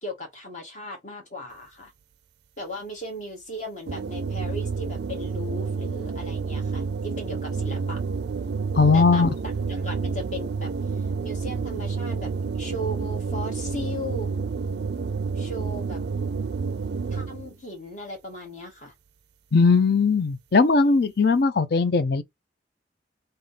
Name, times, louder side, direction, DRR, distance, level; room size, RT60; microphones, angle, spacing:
voice 1, 0.0-1.9 2.6-8.0 8.9-9.3 9.7-14.3 15.4-16.0 17.1-18.9, equal, 40° left, 1.9 m, -37 dB
sound 1, 3.9-17.5, right 5 dB, 65° right, 0.4 m, -29 dB
voice 2, 8.7-9.3 19.5-22.2, left 4 dB, 60° left, 0.5 m, -19 dB
3.6 x 2.6 x 4.0 m
head